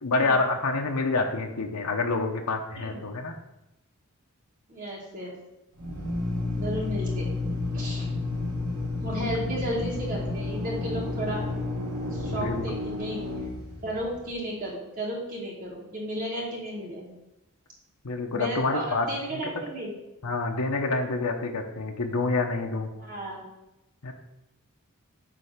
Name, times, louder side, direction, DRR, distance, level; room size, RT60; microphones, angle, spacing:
voice 1, 0.0-3.3 9.2-9.3 12.3-12.6 18.0-19.5 20.2-22.9 24.0-24.1, left 3 dB, 85° left, 3 dB, 0.9 m, -27 dB
voice 2, 4.7-5.3 6.6-8.1 9.0-11.4 12.1-13.2 13.8-17.1 18.3-19.9 23.0-23.4, equal, 40° right, -5 dB, 1.8 m, -34 dB
Drill, 5.7-14.4, left 2 dB, 80° right, 3.0 m, -31 dB
8.9 x 3.3 x 6.6 m, 0.94 s
head